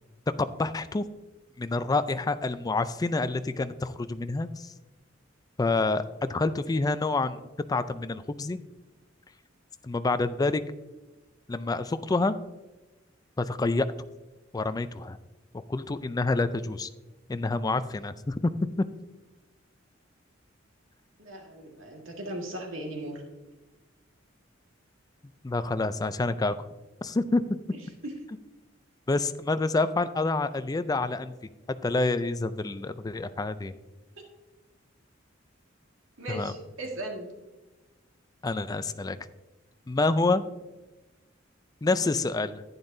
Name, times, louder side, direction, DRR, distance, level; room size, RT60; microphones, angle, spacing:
voice 1, 0.4-1.1 1.6-4.7 5.6-7.4 7.7-8.6 9.8-10.6 11.5-12.3 13.4-13.9 14.5-15.2 15.7-16.9 17.3-18.8 25.4-26.5 27.0-27.4 29.1-31.3 31.8-33.7 36.3-36.5 38.4-39.2 39.9-40.4 41.8-42.6, left 3 dB, 20° left, 12 dB, 0.4 m, -27 dB
voice 2, 21.2-23.2 28.0-28.2 34.2-34.3 36.2-37.3, right 1 dB, 85° right, 1 dB, 1.8 m, -37 dB
11.0 x 9.6 x 2.7 m, 1.1 s
head